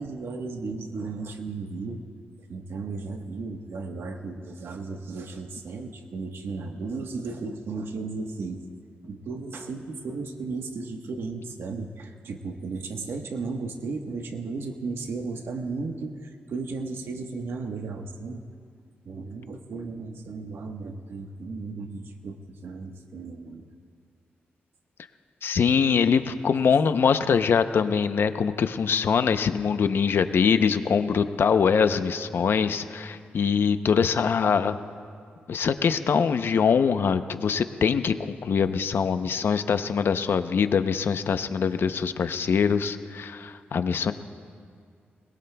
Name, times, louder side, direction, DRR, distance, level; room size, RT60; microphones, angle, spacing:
voice 1, 0.0-2.0 2.5-8.6 9.0-18.5 19.0-23.7, right 4 dB, 75° right, 4 dB, 1.2 m, -35 dB
voice 2, 25.4-34.8 35.5-44.1, left 6 dB, 65° left, 10 dB, 0.7 m, -23 dB
22.0 x 21.0 x 2.3 m, 2.3 s
cardioid pair, 80°, 4 cm